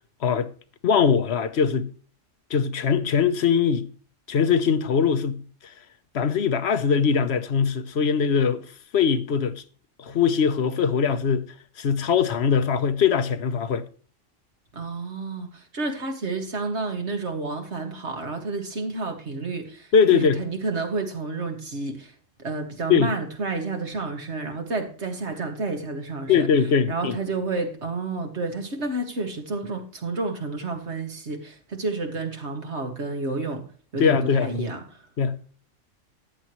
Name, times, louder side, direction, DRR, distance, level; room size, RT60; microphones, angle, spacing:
voice 1, 0.8-1.9 2.5-3.8 4.3-5.4 6.1-8.6 8.9-9.6 10.0-11.5 11.8-13.8 19.9-20.4 22.9-23.1 26.3-27.2 34.0-34.7 35.2-35.3, left 6 dB, 60° left, 1.1 m, -21 dB
voice 2, 14.7-26.5 26.9-33.6 33.9-35.1, right 3 dB, 60° right, 2.2 m, -30 dB
14.0 x 9.7 x 3.1 m
omnidirectional pair, 1.3 m